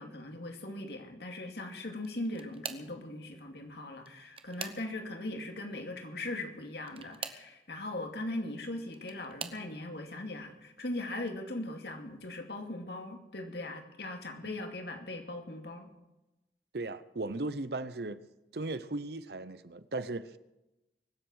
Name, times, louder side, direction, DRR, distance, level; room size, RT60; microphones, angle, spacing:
voice 1, 0.0-15.9, left 2 dB, 60° left, 2.5 m, -39 dB
sound 1, 1.9-3.0 3.9-5.2 6.8-7.5 8.6-9.7 10.4-10.8 11.2-11.3 12.7-12.8, right 6 dB, 30° right, 1.0 m, -44 dB
voice 2, 16.7-18.2 18.5-20.4, right 2 dB, 60° right, 0.7 m, -37 dB
24.0 x 8.1 x 6.3 m
head